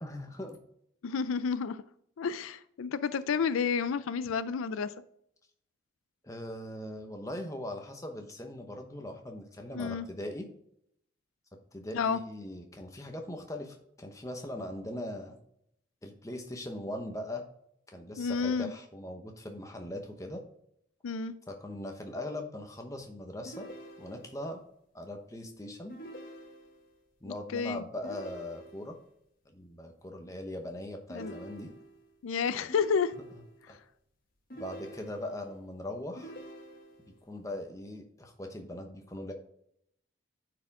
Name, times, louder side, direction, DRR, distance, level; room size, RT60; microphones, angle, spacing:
voice 1, 0.0-0.6 6.2-10.5 11.7-15.4 16.0-17.4 17.9-20.4 21.5-23.7 24.0-24.6 24.9-25.9 27.2-28.9 29.5-31.7 33.7-33.8 34.5-36.3 37.3-39.3, left 1 dB, 15° left, 0.9 m, -40 dB
voice 2, 1.0-1.8 2.2-4.9 9.7-10.1 11.9-12.2 18.2-18.7 21.0-21.3 27.3-27.8 31.1-31.3 32.2-33.1, left 6 dB, 90° left, 0.4 m, -30 dB
sound 1, 23.4-24.5 25.9-27.0 28.0-29.1 31.1-32.1 32.7-33.7 34.5-35.5 36.2-37.2, right 1 dB, 45° left, 1.6 m, -47 dB
9.2 x 4.9 x 3.6 m
head